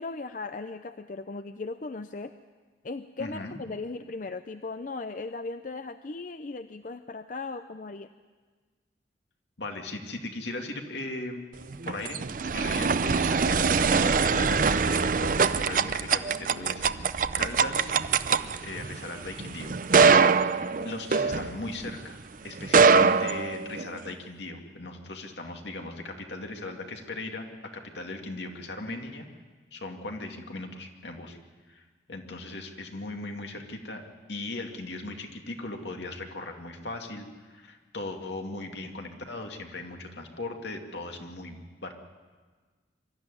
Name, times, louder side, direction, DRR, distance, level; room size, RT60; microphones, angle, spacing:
voice 1, 0.0-2.3 2.8-8.1 20.8-21.0, left 3 dB, 45° left, 10 dB, 0.5 m, -37 dB
voice 2, 3.2-3.6 9.6-11.5 11.8-12.2 12.5-17.9 18.6-20.4 20.8-29.3 29.7-31.4 31.7-34.0 34.3-41.6 41.8-41.9, left 2 dB, 75° left, 3 dB, 2.3 m, -38 dB
sound 1, 11.6-22.0 22.6-24.1, right 5 dB, 45° right, 0.5 m, -23 dB
24.0 x 13.5 x 9.7 m, 1.4 s
head